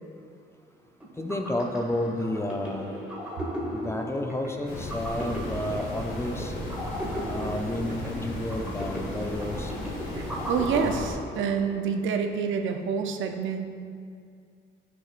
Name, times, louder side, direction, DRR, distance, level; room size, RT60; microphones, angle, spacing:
sound 1, 1.0-11.8, equal, 5° right, 1.6 m, -37 dB
voice 1, 1.2-2.9 3.7-6.5 7.3-9.7, left 1 dB, 15° left, 4 dB, 0.5 m, -31 dB
sound 2, 4.7-11.1, left 1 dB, 85° left, 1.4 m, -35 dB
voice 2, 10.1-13.7, right 6 dB, 75° right, 5 dB, 0.6 m, -28 dB
8.4 x 6.3 x 2.5 m, 2.3 s
cardioid pair, 90°, 20 cm